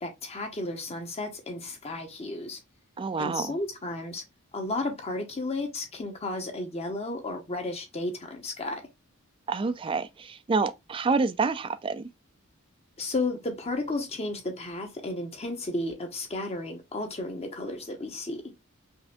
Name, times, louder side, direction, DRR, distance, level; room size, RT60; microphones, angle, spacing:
voice 1, 0.0-2.6 3.2-4.2 4.5-8.8 13.0-18.4, left 2 dB, 30° left, 0.9 m, -33 dB
voice 2, 3.0-3.6 9.5-12.1, right 4 dB, 25° right, 0.3 m, -28 dB
5.5 x 2.6 x 2.3 m
head